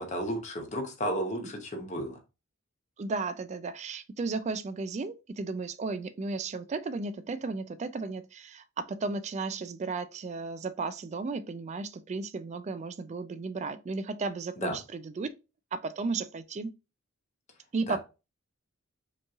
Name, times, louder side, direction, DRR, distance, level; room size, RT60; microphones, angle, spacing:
voice 1, 0.0-2.2 14.6-14.8 17.9-18.0, equal, 35° left, 0.9 m, -33 dB
voice 2, 3.0-15.3 15.7-16.7 17.7-18.0, right 4 dB, 35° right, 0.3 m, -34 dB
5.3 x 3.0 x 2.4 m
head